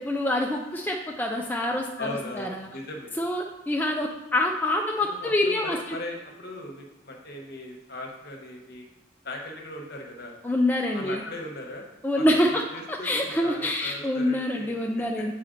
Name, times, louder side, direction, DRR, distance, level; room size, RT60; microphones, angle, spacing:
voice 1, 0.0-2.5 3.2-6.0 10.4-11.2 12.0-12.6 12.9-15.3, left 1 dB, 10° left, 0 dB, 0.4 m, -26 dB
voice 2, 2.0-3.1 5.0-8.9 9.2-10.3 10.9-11.9 12.2-15.3, left 1 dB, 50° left, 2 dB, 1.1 m, -39 dB
7.6 x 4.2 x 3.8 m, 1.1 s
head